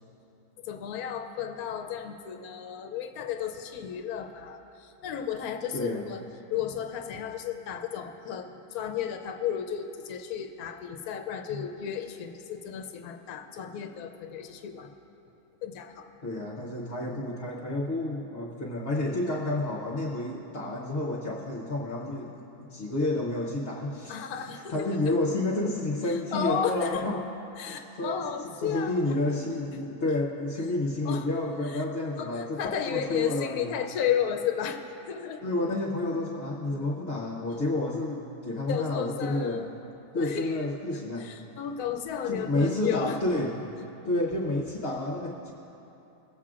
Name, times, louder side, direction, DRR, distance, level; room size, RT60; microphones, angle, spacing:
voice 1, 0.6-6.2 6.5-14.9 15.6-16.1 24.1-25.1 26.0-27.0 27.6-29.2 31.0-31.2 31.6-31.8 32.2-34.8 35.1-35.5 38.7-39.6 40.2-40.7 41.2-43.2, left 8 dB, 75° left, 6 dB, 1.1 m, -33 dB
voice 2, 5.7-6.0 16.2-24.3 24.7-27.2 27.6-28.2 28.6-32.6 32.9-33.7 35.4-39.7 40.1-41.3 42.3-43.6 44.0-45.5, left 2 dB, 45° left, -5 dB, 1.1 m, -30 dB
22.0 x 7.4 x 2.5 m, 2.9 s
omnidirectional pair, 1.6 m